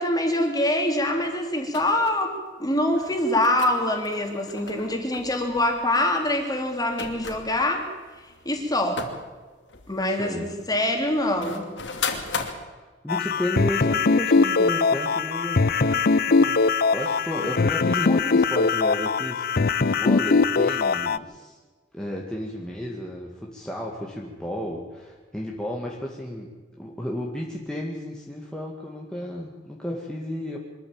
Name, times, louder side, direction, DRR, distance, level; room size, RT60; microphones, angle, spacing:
voice 1, 0.0-7.9 8.4-9.0 9.9-11.7, left 1 dB, 20° left, 3 dB, 3.6 m, -24 dB
sound 1, 1.7-2.1 2.9-9.3 9.7-12.5, left 5 dB, 75° left, 2.7 m, -37 dB
voice 2, 10.1-10.5 12.7-16.6 16.8-21.6 21.9-30.6, left 1 dB, 5° left, -2 dB, 2.1 m, -33 dB
sound 2, 13.1-21.2, left 4 dB, 55° left, 0.6 m, -21 dB
24.0 x 14.0 x 8.9 m, 1.4 s
head